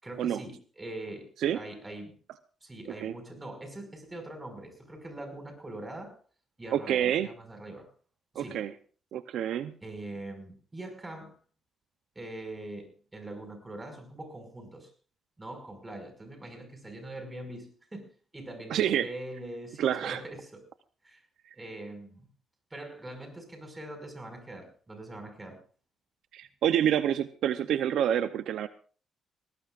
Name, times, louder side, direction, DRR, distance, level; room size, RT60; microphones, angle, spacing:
voice 1, 0.0-2.2 2.6-6.2 6.6-7.9 8.3-8.6 9.8-11.4 12.2-14.9 15.4-20.7 21.0-21.2 21.5-22.3 22.7-25.6, right 1 dB, 20° right, 5.8 m, -43 dB
voice 2, 6.7-7.3 8.4-8.7 9.1-9.7 18.7-19.1 19.8-20.2 26.3-28.7, right 10 dB, 75° right, 0.7 m, -27 dB
20.5 x 19.0 x 2.5 m
cardioid pair, 90°, 0 cm